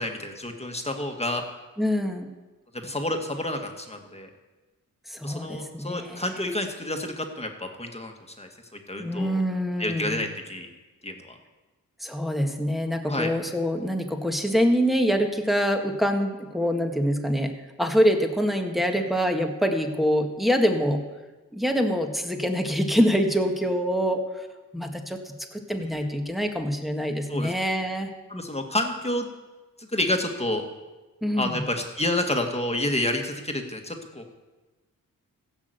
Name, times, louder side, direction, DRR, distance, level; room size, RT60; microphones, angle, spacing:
voice 1, 0.0-1.4 2.8-4.3 5.2-8.5 8.9-9.4 9.8-10.7 11.0-11.3 13.1-13.3 27.3-27.5 28.3-29.3 29.8-30.6 31.4-34.3, left 1 dB, 20° left, 4 dB, 2.0 m, -29 dB
voice 2, 1.8-2.3 5.1-6.3 9.0-10.2 12.0-17.5 17.8-21.0 21.5-24.5 24.7-28.1 31.2-31.6, equal, ahead, 3 dB, 1.7 m, -25 dB
15.5 x 6.2 x 8.0 m, 1.2 s
cardioid pair, 60°, 34 cm